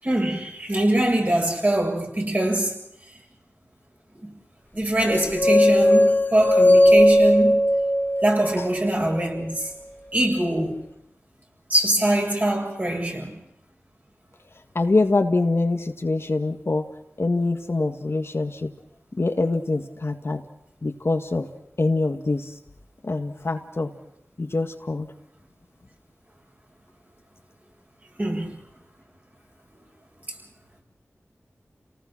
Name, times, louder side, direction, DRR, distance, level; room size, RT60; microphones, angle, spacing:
voice 1, 0.0-2.8 4.1-4.3 4.7-7.6 8.2-9.7 10.1-10.8 11.7-13.4 28.2-28.6, right 1 dB, 35° right, 7.6 m, -23 dB
sound 1, 5.1-9.2, left 1 dB, 35° left, 1.6 m, -18 dB
voice 2, 14.7-16.9 17.2-18.7 19.2-20.4 20.8-21.5 21.8-22.5 23.0-23.9 24.4-25.1, left 3 dB, 55° left, 1.8 m, -24 dB
29.5 x 19.0 x 6.1 m
wide cardioid pair, 55°, 5 cm